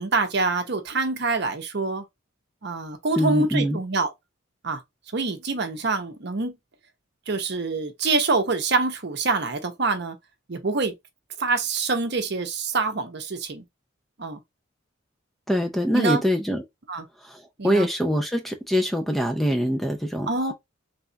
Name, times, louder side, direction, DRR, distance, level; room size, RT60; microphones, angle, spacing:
voice 1, 0.0-2.0 2.6-4.1 4.6-4.8 5.1-6.5 7.3-10.2 10.5-10.9 11.4-13.6 14.2-14.4 15.9-16.2 16.9-17.1 17.6-17.9 20.3-20.5, right 3 dB, 55° right, 0.7 m, -25 dB
voice 2, 3.1-3.8 15.5-16.6 17.3-20.5, equal, ahead, 0.5 m, -24 dB
3.4 x 2.4 x 3.8 m
head